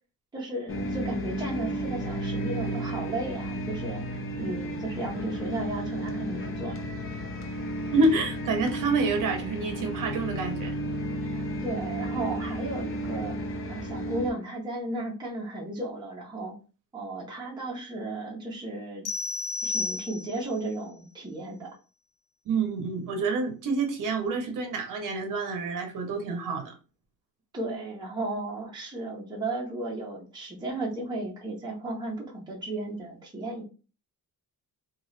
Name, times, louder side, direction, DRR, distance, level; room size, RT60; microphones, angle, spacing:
voice 1, 0.3-6.8 11.3-13.4 13.7-16.6 16.9-19.1 19.6-21.7 27.5-33.6, right 2 dB, 10° right, 0.7 m, -34 dB
sound 1, 0.7-14.3, equal, 35° left, 0.4 m, -33 dB
voice 2, 7.9-10.8 22.5-26.7, right 3 dB, 55° right, 0.7 m, -27 dB
sound 2, 19.0-20.6, left 3 dB, 50° left, 0.8 m, -32 dB
2.9 x 2.4 x 3.1 m
cardioid pair, 175°, 39 cm